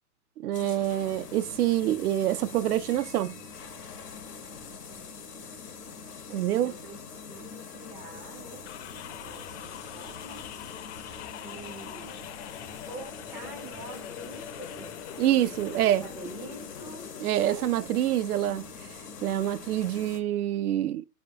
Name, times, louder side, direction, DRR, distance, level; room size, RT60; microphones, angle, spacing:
voice 1, 0.4-3.3 6.3-6.7 15.2-16.0 17.2-18.6 19.2-21.0, right 12 dB, 75° right, 0.5 m, -26 dB
sound 1, 0.5-20.2, left 5 dB, 85° left, 1.1 m, -44 dB
voice 2, 4.7-5.5 6.3-7.0 7.3-8.7 9.2-10.5 11.4-12.2 12.8-15.0 15.6-17.7, right 2 dB, 5° right, 0.4 m, -46 dB
sound 2, 8.6-17.2, left 10 dB, 50° left, 0.5 m, -43 dB
4.5 x 3.3 x 2.7 m
hypercardioid pair, 140°, 45 cm